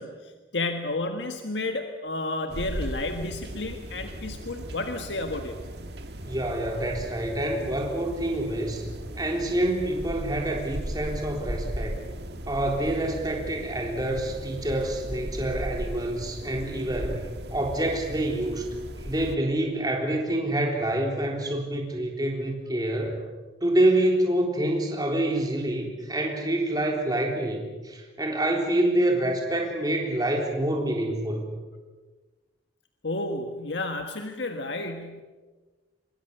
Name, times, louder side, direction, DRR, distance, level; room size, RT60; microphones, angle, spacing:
voice 1, 0.0-5.6 33.0-35.2, left 2 dB, 75° left, 5 dB, 1.6 m, -31 dB
sound 1, 2.5-19.4, right 1 dB, 65° right, 1.8 m, -37 dB
voice 2, 6.2-8.9 9.2-12.0 12.5-18.8 19.0-23.2 23.6-31.5, right 1 dB, 20° right, 1 dB, 3.7 m, -27 dB
25.5 x 22.5 x 6.8 m, 1.3 s
head